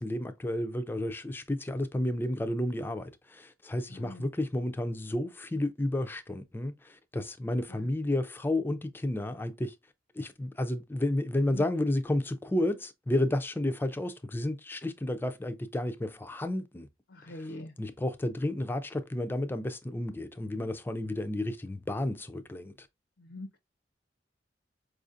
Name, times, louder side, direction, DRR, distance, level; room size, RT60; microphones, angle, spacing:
voice 1, 0.0-9.7 10.2-16.9 17.3-17.5 17.8-22.9, left 1 dB, 10° left, 0.4 m, -31 dB
voice 2, 3.9-4.3 7.7-7.9 17.1-17.7 23.2-23.6, left 1 dB, 70° left, 0.5 m, -43 dB
4.8 x 2.5 x 2.5 m
head